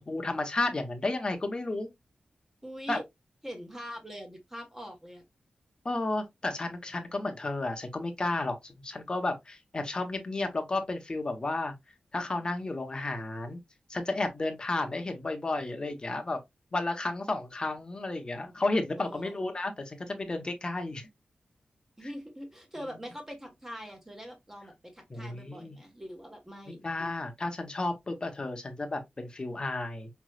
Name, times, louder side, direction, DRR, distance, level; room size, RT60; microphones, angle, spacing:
voice 1, 0.0-1.9 2.9-3.0 5.8-11.7 12.1-13.6 13.9-16.4 16.7-21.1 22.8-23.0 25.1-25.8 26.8-30.1, left 2 dB, 30° left, 1.0 m, -32 dB
voice 2, 2.6-3.0 3.4-5.2 19.0-19.4 22.0-26.8, equal, 15° right, 1.4 m, -43 dB
5.2 x 3.1 x 2.4 m
wide cardioid pair, 135°, 3 cm